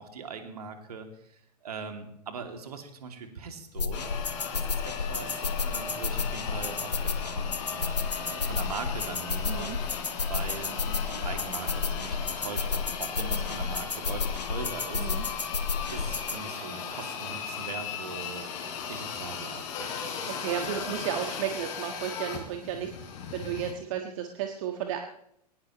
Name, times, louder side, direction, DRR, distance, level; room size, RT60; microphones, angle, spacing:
voice 1, 0.0-4.1 4.5-9.9 10.3-15.2 15.9-18.5 18.9-20.7, right 5 dB, 70° right, 5 dB, 2.7 m, -41 dB
sound 1, 3.8-16.4, left 5 dB, 85° left, 1.1 m, -32 dB
sound 2, 3.9-23.7, left 6 dB, 50° left, 4.0 m, -37 dB
voice 2, 9.4-9.8 13.3-13.5 15.0-15.3 20.3-25.0, right 9 dB, 50° right, 4 dB, 1.6 m, -33 dB
21.5 x 19.0 x 3.2 m, 0.74 s
figure-of-eight pair, 95°, 20 cm